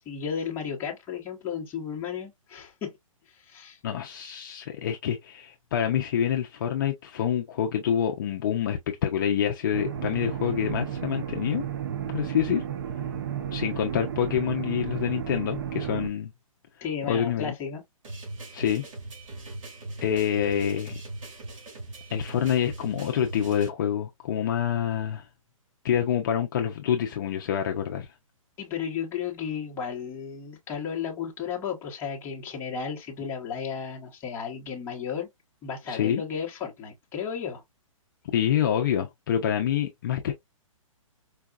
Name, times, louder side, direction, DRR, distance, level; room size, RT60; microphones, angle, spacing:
voice 1, 0.0-3.0 3.3-3.8 16.8-17.8 28.6-35.3 35.6-37.6, left 7 dB, 10° left, 0.9 m, -34 dB
voice 2, 3.8-11.7 12.1-12.6 13.5-16.3 17.1-17.5 18.5-18.8 20.0-21.0 22.1-25.3 25.8-28.1 35.9-36.2 38.3-40.3, left 9 dB, 35° left, 0.5 m, -27 dB
sound 1, 9.7-16.1, right 9 dB, 40° right, 0.5 m, -33 dB
sound 2, 18.0-23.7, right 2 dB, 65° right, 2.5 m, -40 dB
4.7 x 2.3 x 2.3 m
hypercardioid pair, 165°, 18 cm